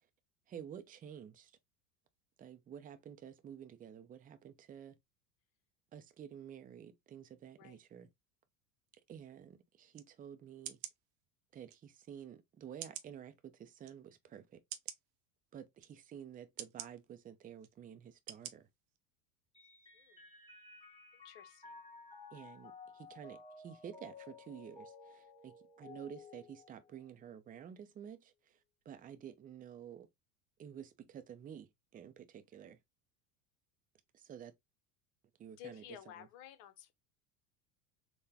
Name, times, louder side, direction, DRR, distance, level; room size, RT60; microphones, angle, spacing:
voice 1, 0.5-1.5 2.4-5.0 5.9-8.1 9.1-10.8 11.5-14.6 15.5-18.7 22.3-28.6 28.9-30.1 30.6-32.8 34.1-34.5 35.4-35.8, right 8 dB, 20° right, 0.4 m, -51 dB
sound 1, 9.9-10.1 10.6-11.0 11.7-11.8 12.8-13.1 13.8-13.9 14.7-15.0 15.8-15.9 16.6-16.9 17.6-17.7 18.3-18.5 19.0-19.1, right 12 dB, 60° right, 0.7 m, -45 dB
Mallet percussion, 19.5-27.3, left 4 dB, 10° left, 1.3 m, -55 dB
voice 2, 21.1-21.8 35.6-36.9, left 11 dB, 65° left, 0.8 m, -53 dB
3.8 x 2.1 x 2.8 m
hypercardioid pair, 95°, 47 cm